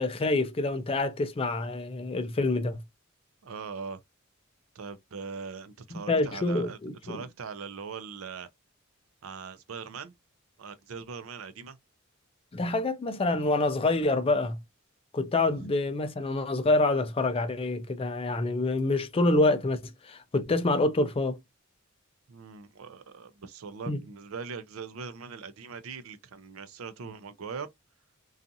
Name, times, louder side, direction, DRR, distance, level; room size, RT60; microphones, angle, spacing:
voice 1, 0.0-2.8 5.9-7.2 12.5-14.6 15.1-21.4 23.9-24.0, left 2 dB, 25° left, 0.4 m, -27 dB
voice 2, 3.4-4.0 4.7-8.5 9.2-10.1 10.6-11.8 15.5-15.6 22.3-27.7, right 5 dB, 80° right, 0.5 m, -41 dB
2.6 x 2.4 x 2.6 m
head